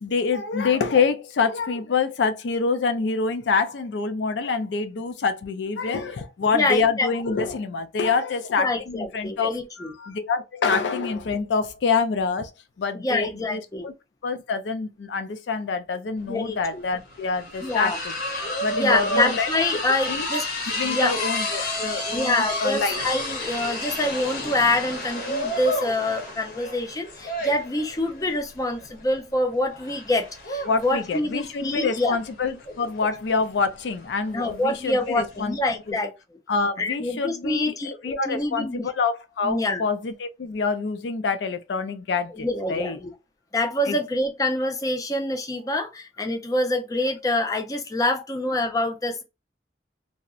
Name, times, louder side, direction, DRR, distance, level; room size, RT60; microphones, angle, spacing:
voice 1, 0.0-12.5 12.8-13.9 14.2-18.2 18.6-19.8 20.1-20.3 20.7-23.0 30.7-35.6 35.9-36.0 36.5-43.0 43.9-44.0, left 4 dB, 80° left, 0.4 m, -26 dB
voice 2, 6.5-7.1 8.6-9.9 12.9-13.9 16.2-16.8 17.6-18.0 18.7-20.4 20.8-21.2 22.1-32.2 34.3-36.1 36.8-38.9 39.4-39.8 42.3-43.1 43.5-49.2, left 2 dB, 20° left, 0.4 m, -26 dB
sound 1, 16.2-16.3 16.6-35.4, left 1 dB, 50° left, 0.7 m, -31 dB
2.6 x 2.0 x 2.4 m
head